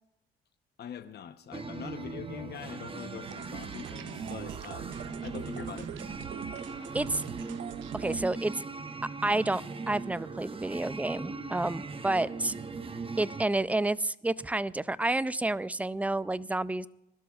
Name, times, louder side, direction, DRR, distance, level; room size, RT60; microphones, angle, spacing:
voice 1, 0.8-5.9, left 9 dB, 50° left, 9 dB, 1.0 m, -43 dB
sound 1, 1.5-13.5, right 4 dB, 25° right, 0.9 m, -39 dB
sound 2, 3.3-8.3, right 12 dB, 65° right, 0.5 m, -43 dB
voice 2, 7.9-8.6 9.2-9.6 9.9-12.5 13.2-16.9, right 2 dB, 5° right, 18 dB, 0.4 m, -29 dB
21.5 x 12.0 x 2.4 m, 0.88 s
supercardioid pair, 80°, 21 cm